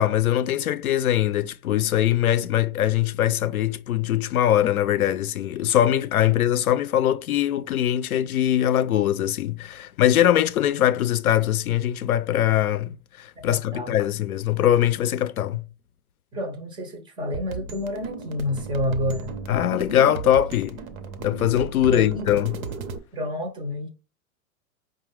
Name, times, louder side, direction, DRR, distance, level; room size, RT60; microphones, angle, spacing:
voice 1, 0.0-15.7 19.5-20.8 21.2-22.6, left 11 dB, 85° left, 0.5 m, -22 dB
voice 2, 13.5-14.0 16.3-19.4 21.9-22.4 23.1-23.9, left 1 dB, 10° right, 0.4 m, -29 dB
sound 1, 17.3-23.0, right 5 dB, 70° right, 0.8 m, -35 dB
4.8 x 2.2 x 3.1 m
hypercardioid pair, 105°, 42 cm